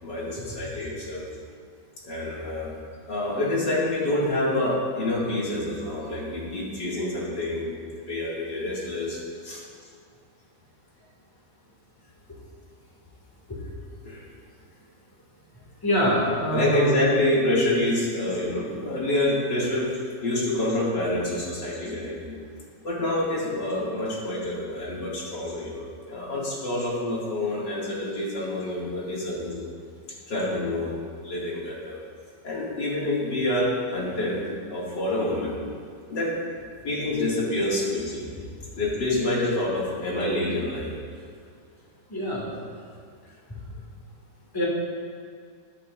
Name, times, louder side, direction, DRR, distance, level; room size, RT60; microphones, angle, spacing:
voice 1, 0.0-1.2 2.0-2.7 3.1-9.2 9.4-9.6 14.0-14.2 16.3-19.9 20.2-22.4 22.8-29.8 30.3-32.0 32.4-34.4 34.7-35.5 36.1-36.3 36.8-38.3 38.8-40.9, left 1 dB, 80° left, -6 dB, 3.0 m, -27 dB
voice 2, 15.8-17.1 38.0-38.1 42.1-42.6 43.5-43.6 44.5-44.7, equal, 10° left, -4 dB, 2.3 m, -25 dB
21.0 x 8.4 x 2.6 m, 2.1 s
omnidirectional pair, 1.9 m